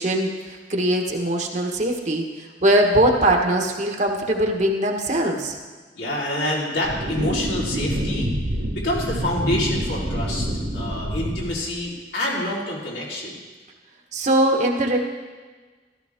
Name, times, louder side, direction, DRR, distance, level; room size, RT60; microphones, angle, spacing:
voice 1, 0.0-5.6 14.1-15.0, right 1 dB, 40° right, 2 dB, 1.4 m, -21 dB
voice 2, 5.9-8.3 8.7-10.5 10.7-13.4, left 1 dB, 85° left, -5 dB, 3.9 m, -27 dB
sound 1, 6.8-11.8, equal, 70° right, 1.9 m, -27 dB
15.0 x 13.5 x 3.6 m, 1.4 s
head